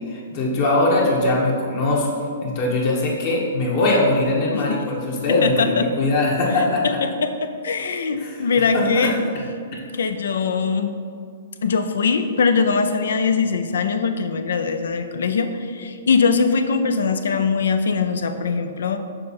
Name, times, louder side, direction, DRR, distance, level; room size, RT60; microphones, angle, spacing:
voice 1, 0.1-7.0 8.2-8.5 8.7-9.4, left 2 dB, 45° left, -3 dB, 1.3 m, -21 dB
voice 2, 5.4-5.8 6.8-9.1 10.0-10.9 11.6-19.0, left 5 dB, 80° left, 8 dB, 0.5 m, -21 dB
6.7 x 3.7 x 4.2 m, 2.3 s
hypercardioid pair, 135°, 0 cm